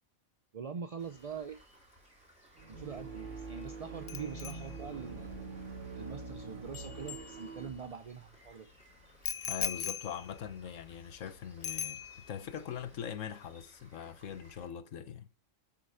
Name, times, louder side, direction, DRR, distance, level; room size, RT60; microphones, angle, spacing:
voice 1, 0.5-1.6 2.7-5.4 5.9-8.7, right 6 dB, 50° right, 0.4 m, -43 dB
Rain, 1.0-14.7, equal, 5° right, 4.0 m, -62 dB
sound 1, 2.6-7.8, right 4 dB, 65° right, 2.5 m, -44 dB
Bicycle bell, 4.1-7.9 9.2-11.3 11.6-12.5 12.8-13.1, left 7 dB, 50° left, 0.4 m, -41 dB
voice 2, 9.5-15.3, left 8 dB, 70° left, 1.2 m, -42 dB
8.6 x 6.0 x 4.7 m
omnidirectional pair, 1.4 m